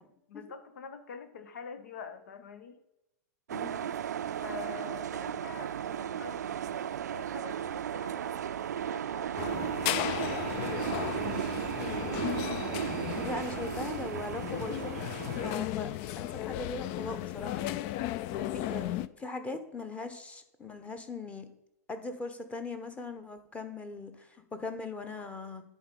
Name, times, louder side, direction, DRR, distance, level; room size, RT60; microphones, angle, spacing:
voice 1, 0.3-2.8 4.4-9.8 10.5-12.4, left 6 dB, 75° left, 9 dB, 1.0 m, -47 dB
voice 2, 3.5-3.9 13.2-15.0 15.4-17.8 18.3-21.5 21.9-25.6, left 3 dB, 15° left, 8 dB, 1.1 m, -40 dB
sound 1, 3.5-15.5, right 9 dB, 80° right, 0.4 m, -35 dB
sound 2, 9.4-19.1, left 14 dB, 45° left, 0.4 m, -35 dB
10.0 x 4.2 x 5.4 m, 0.89 s
hypercardioid pair, 110°, 9 cm